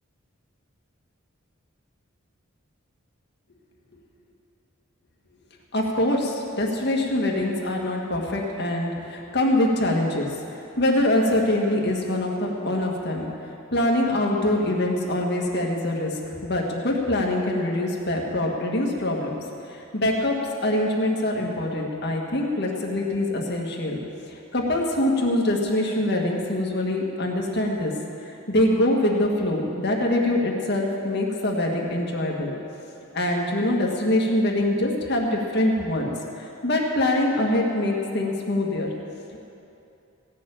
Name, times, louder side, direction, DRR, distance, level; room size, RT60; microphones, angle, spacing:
voice 1, 5.7-10.3 10.5-13.3 13.7-19.4 19.7-24.0 24.3-27.9 28.2-32.5 33.1-38.9, left 1 dB, 50° left, 0 dB, 1.9 m, -24 dB
16.5 x 6.9 x 8.9 m, 2.7 s
head